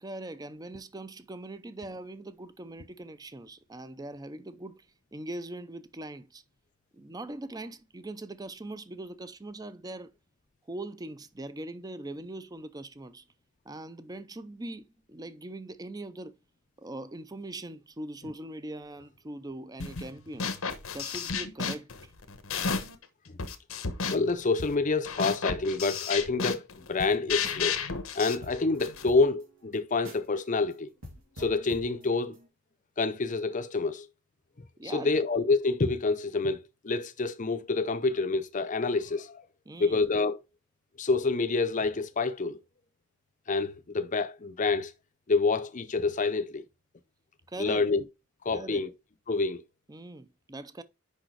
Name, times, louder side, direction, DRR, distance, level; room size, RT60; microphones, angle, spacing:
voice 1, 0.0-4.9 5.1-6.4 6.9-10.1 10.7-13.2 13.7-16.4 16.8-20.6 20.9-22.1 34.8-35.1 39.7-40.0 47.5-47.9 48.5-48.9 49.9-50.8, right 2 dB, 20° right, 0.5 m, -41 dB
sound 1, 19.8-20.1 20.4-23.0 23.4-29.1, left 5 dB, 90° left, 1.1 m, -33 dB
voice 2, 24.1-27.8 28.1-30.9 31.4-32.4 33.0-34.1 34.8-39.4 39.8-40.4 41.0-42.6 43.5-44.9 45.3-46.6 47.6-48.0 48.4-48.9 49.3-49.6, left 3 dB, 40° left, 0.6 m, -27 dB
sound 2, 27.3-27.8 28.1-28.2 28.4-30.4 30.7-30.8 31.0-32.5, equal, 90° right, 3.0 m, -47 dB
6.4 x 5.5 x 4.6 m
head